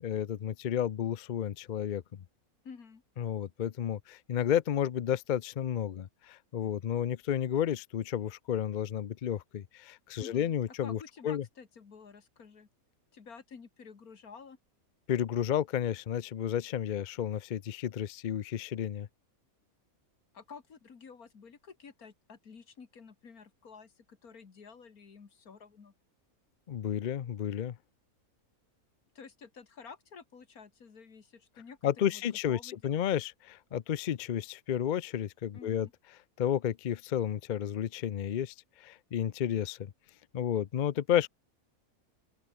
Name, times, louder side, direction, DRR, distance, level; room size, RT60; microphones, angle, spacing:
voice 1, 0.0-2.0 3.2-11.0 11.2-11.4 15.1-19.1 26.7-27.8 31.8-35.9 36.4-39.9 40.3-41.3, left 9 dB, 60° left, 0.4 m, -32 dB
voice 2, 2.6-3.0 10.2-10.5 10.8-12.7 13.1-14.6 20.3-25.9 29.1-33.0 35.5-35.9, left 5 dB, 75° left, 2.5 m, -51 dB
open air
omnidirectional pair, 1.5 m